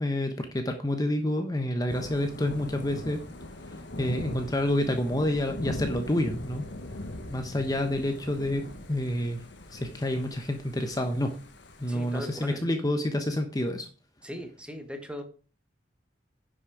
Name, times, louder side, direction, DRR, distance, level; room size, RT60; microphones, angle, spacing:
voice 1, 0.0-3.2 4.0-6.7 7.3-8.6 8.9-9.4 9.7-11.3 11.8-13.9, left 1 dB, 20° left, 6 dB, 1.0 m, -28 dB
Thunder / Rain, 1.9-12.5, left 1 dB, 85° left, 1.5 m, -41 dB
voice 2, 11.9-12.6 14.2-15.2, equal, 5° right, 6 dB, 1.4 m, -39 dB
10.5 x 6.2 x 4.9 m, 0.37 s
head